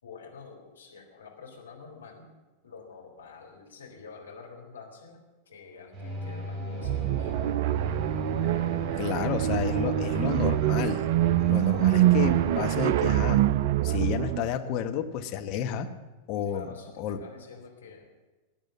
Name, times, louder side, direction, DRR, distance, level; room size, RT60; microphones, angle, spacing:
voice 1, 0.0-2.3 2.6-7.9 16.4-18.1, left 5 dB, 70° left, 0 dB, 3.9 m, -48 dB
sound 1, 5.9-12.7, left 1 dB, 15° right, 5.3 m, -37 dB
sound 2, 6.8-14.5, right 14 dB, 50° right, 0.4 m, -25 dB
sound 3, 7.2-11.2, left 3 dB, 20° left, 4.8 m, -53 dB
voice 2, 9.0-11.1 11.4-13.4 13.8-15.9 16.3-17.2, left 8 dB, 40° left, 6 dB, 1.3 m, -31 dB
20.0 x 8.9 x 7.3 m, 1.2 s
figure-of-eight pair, 90°, 0 cm